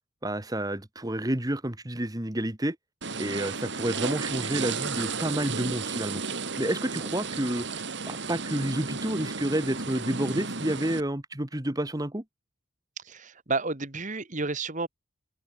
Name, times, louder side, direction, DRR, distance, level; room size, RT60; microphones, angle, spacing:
voice 1, 0.2-2.8 3.2-6.2 6.6-12.2, right 1 dB, 20° right, 1.4 m, -30 dB
sound 1, 3.0-11.0, right 4 dB, 55° right, 2.3 m, -33 dB
voice 2, 13.0-14.9, right 3 dB, 35° right, 1.8 m, -31 dB
open air
head